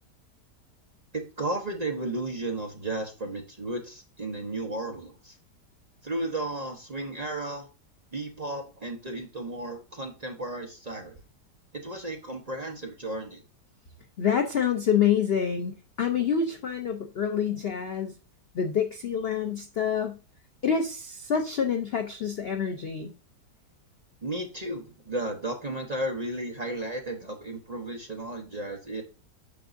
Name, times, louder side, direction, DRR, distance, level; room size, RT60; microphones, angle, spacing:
voice 1, 1.1-5.4 6.0-7.7 8.1-11.2 11.7-13.4 24.2-29.0, right 2 dB, 35° right, 2 dB, 0.7 m, -34 dB
voice 2, 14.2-18.1 18.5-20.2 20.6-23.1, left 7 dB, 80° left, 6 dB, 0.5 m, -27 dB
7.0 x 5.9 x 2.5 m, 0.33 s
omnidirectional pair, 1.9 m